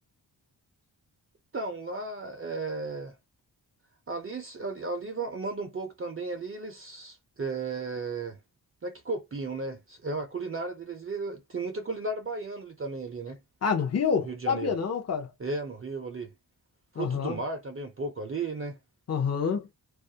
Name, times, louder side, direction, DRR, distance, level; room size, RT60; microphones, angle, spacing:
voice 1, 1.5-3.1 4.1-8.4 8.8-13.4 14.2-14.7 15.4-16.3 16.9-18.8, right 3 dB, 35° right, 0.5 m, -34 dB
voice 2, 13.6-15.3 17.0-17.4 19.1-19.7, left 6 dB, 40° left, 0.6 m, -27 dB
2.3 x 2.0 x 2.7 m
wide cardioid pair, 105°, 41 cm